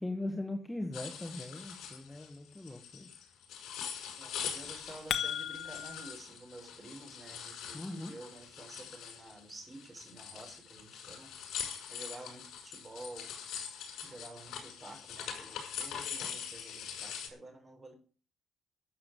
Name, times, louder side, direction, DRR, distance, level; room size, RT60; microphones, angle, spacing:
voice 1, 0.0-3.1 7.7-8.1, left 1 dB, 10° left, 3 dB, 1.4 m, -39 dB
sound 1, 0.9-17.3, left 8 dB, 80° left, 6.2 m, -43 dB
voice 2, 4.2-11.3 11.9-13.3 14.0-17.9, right 2 dB, 20° right, 4 dB, 3.9 m, -50 dB
sound 2, 4.6-6.1, left 10 dB, 60° left, 1.1 m, -36 dB
12.5 x 7.4 x 8.9 m, 0.38 s
cardioid pair, 180°, 0 cm